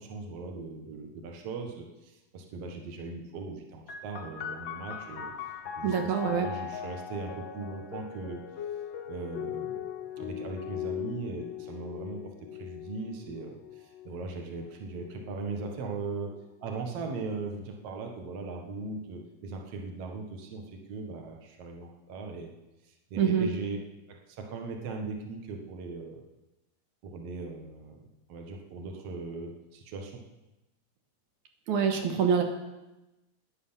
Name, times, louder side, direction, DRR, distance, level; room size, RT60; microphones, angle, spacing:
voice 1, 0.0-5.3 5.7-8.4 9.1-9.7 10.2-16.3 16.6-22.5 22.9-23.8 24.1-26.2 27.0-30.2, right 3 dB, 60° right, 2 dB, 2.4 m, -39 dB
sound 1, 3.9-17.1 18.0-18.8, left 9 dB, 90° left, 1.0 m, -40 dB
voice 2, 5.8-6.5 23.2-23.5 31.7-32.4, right 7 dB, 85° right, 3 dB, 2.9 m, -25 dB
15.5 x 10.5 x 5.7 m, 1.0 s
omnidirectional pair, 3.4 m